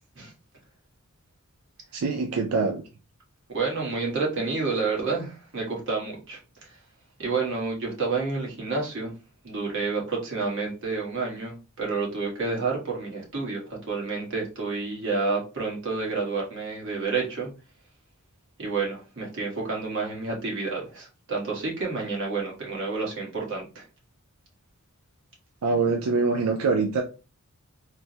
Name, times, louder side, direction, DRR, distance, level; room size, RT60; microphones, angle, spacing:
voice 1, 1.9-2.8 25.6-27.0, right 4 dB, 85° right, 3 dB, 0.4 m, -24 dB
voice 2, 3.5-6.4 7.2-9.1 9.4-17.5 18.6-23.8, right 4 dB, 55° right, -2 dB, 1.2 m, -29 dB
3.3 x 2.1 x 2.7 m, 0.31 s
head